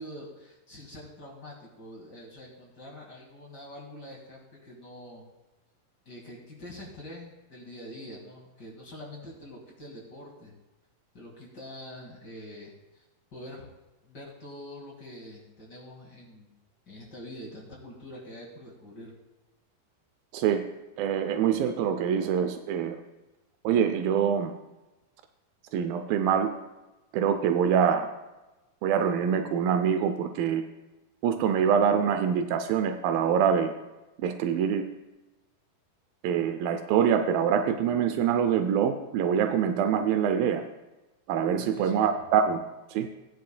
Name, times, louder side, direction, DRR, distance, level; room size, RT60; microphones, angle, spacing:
voice 1, 0.0-5.2 6.1-10.5 11.1-13.0 13.3-13.7 14.0-16.5 16.9-19.1 41.6-42.1, left 1 dB, 35° left, -3 dB, 2.2 m, -45 dB
voice 2, 21.0-23.0 23.6-24.5 25.7-26.5 27.1-28.1 28.8-30.6 31.2-33.7 34.2-34.8 36.2-40.6 41.3-42.6 42.9-43.1, right 8 dB, 85° right, 8 dB, 2.4 m, -25 dB
19.0 x 9.4 x 2.2 m, 1.1 s
omnidirectional pair, 4.0 m